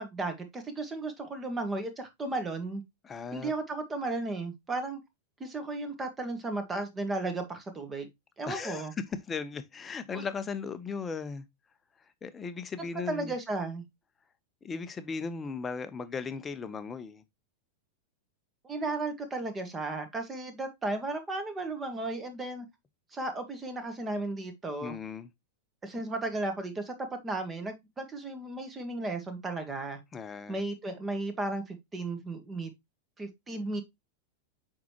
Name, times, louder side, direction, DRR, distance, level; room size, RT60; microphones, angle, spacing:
voice 1, 0.0-2.8 3.3-5.0 5.4-8.1 8.4-8.9 10.1-10.3 13.1-13.8 18.6-22.6 23.1-25.0 25.8-30.0 30.5-32.7 33.2-33.8, right 2 dB, 15° right, 1.7 m, -34 dB
voice 2, 3.0-3.5 8.4-8.9 9.3-11.4 12.2-13.3 14.6-17.2 24.8-25.3 30.1-30.6, left 5 dB, 20° left, 0.8 m, -37 dB
7.2 x 4.7 x 2.9 m
figure-of-eight pair, 90°, 0 cm